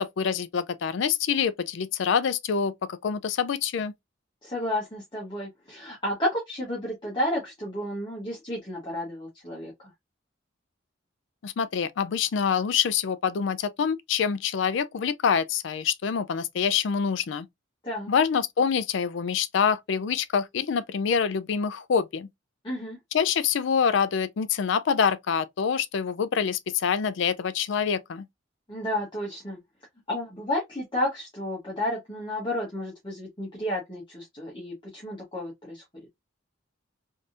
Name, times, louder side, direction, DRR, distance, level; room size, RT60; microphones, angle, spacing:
voice 1, 0.0-2.7 3.0-3.9 11.4-17.5 18.1-22.3 23.1-28.3, left 7 dB, 65° left, 0.4 m, -26 dB
voice 2, 4.4-9.9 17.8-18.1 22.6-23.0 28.7-29.6 30.1-36.1, left 1 dB, 25° left, 0.9 m, -32 dB
3.3 x 2.7 x 2.4 m
head